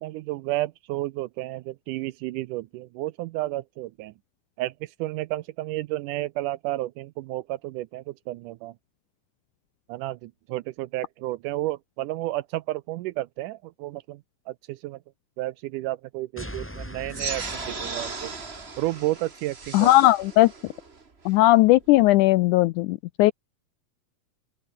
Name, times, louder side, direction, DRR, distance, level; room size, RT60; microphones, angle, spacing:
voice 1, 0.0-4.1 4.6-8.7 9.9-14.2 14.5-15.0 15.4-18.3 18.8-19.9, right 17 dB, 80° right, 1.9 m, -31 dB
sound 1, 16.4-18.9, equal, 5° left, 5.5 m, -40 dB
sound 2, 17.1-22.1, right 4 dB, 25° right, 1.5 m, -37 dB
voice 2, 19.7-20.5 21.3-23.3, left 17 dB, 85° left, 1.8 m, -18 dB
open air
omnidirectional pair, 4.0 m